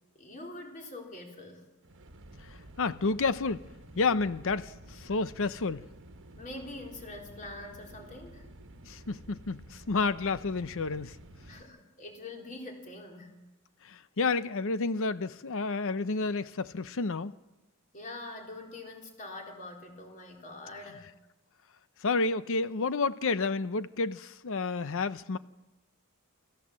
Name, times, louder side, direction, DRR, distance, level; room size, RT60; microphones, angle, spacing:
voice 1, 0.1-1.6 6.4-8.5 11.5-13.4 17.9-21.1, left 2 dB, 35° left, 4.0 m, -44 dB
sound 1, 1.8-11.6, right 1 dB, 60° right, 1.4 m, -51 dB
voice 2, 2.4-3.6 4.0-5.8 8.9-11.2 13.8-17.3 22.0-25.4, left 4 dB, 65° left, 0.7 m, -30 dB
26.5 x 15.0 x 7.5 m
head